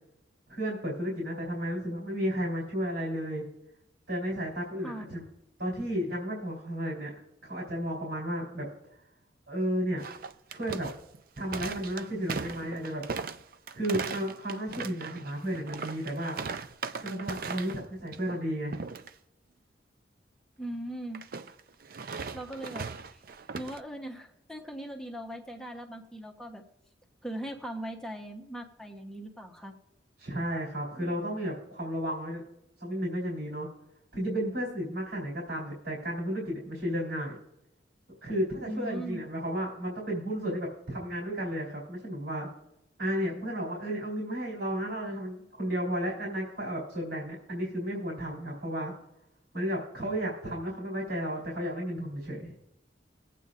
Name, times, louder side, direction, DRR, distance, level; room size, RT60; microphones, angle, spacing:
voice 1, 0.5-3.4 4.1-5.2 5.6-7.1 7.4-8.7 9.5-10.0 10.5-10.9 11.4-13.1 13.7-16.4 17.0-18.8 30.2-32.4 32.8-33.7 34.1-37.4 38.2-42.5 43.0-48.9 49.5-52.5, equal, 75° right, -4 dB, 3.5 m, -33 dB
sound 1, 10.0-17.8 18.1-18.4 18.7-19.1 21.1-23.8, right 5 dB, 50° right, 0.5 m, -38 dB
voice 2, 20.6-21.2 22.3-23.2 23.5-26.6 27.2-29.7 30.9-31.2 38.6-39.2, right 1 dB, 5° left, 1 dB, 1.0 m, -39 dB
20.5 x 8.3 x 2.5 m, 0.84 s
head